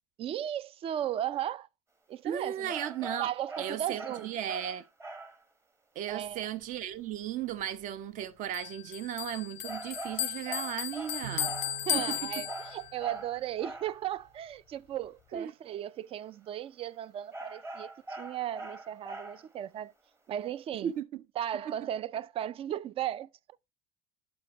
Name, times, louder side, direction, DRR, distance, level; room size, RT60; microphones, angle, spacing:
voice 1, 0.2-1.7 2.1-2.7 3.2-4.3 6.1-6.5 11.9-19.9 20.3-20.9 21.4-23.3, right 11 dB, 35° right, 0.4 m, -36 dB
voice 2, 2.2-3.3 3.6-4.8 5.9-11.5 11.9-12.4 15.3-15.5 20.8-21.2 21.7-21.8, right 10 dB, 50° right, 0.9 m, -36 dB
sound 1, 2.7-5.4 9.6-14.0 17.3-19.6, right 2 dB, 15° right, 1.0 m, -43 dB
Bell, 8.5-13.0, left 14 dB, 45° left, 0.4 m, -35 dB
Bowed string instrument, 11.2-13.9, right 13 dB, 85° right, 0.9 m, -47 dB
11.0 x 4.5 x 3.0 m
cardioid pair, 125°, 16 cm